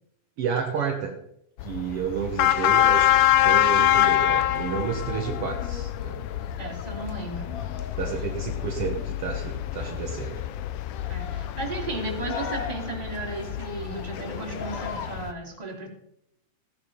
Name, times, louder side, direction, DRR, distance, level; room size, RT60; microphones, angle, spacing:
voice 1, 0.4-1.2 1.6-6.2 8.0-10.4, right 7 dB, 70° right, 2 dB, 1.4 m, -31 dB
sound 1, 1.6-15.3, left 13 dB, 80° left, 1.9 m, -26 dB
sound 2, 4.1-15.2, left 6 dB, 65° left, 2.8 m, -40 dB
voice 2, 6.6-7.5 11.1-15.9, right 2 dB, 10° right, -3 dB, 2.7 m, -34 dB
16.5 x 10.5 x 5.3 m, 0.77 s
omnidirectional pair, 4.3 m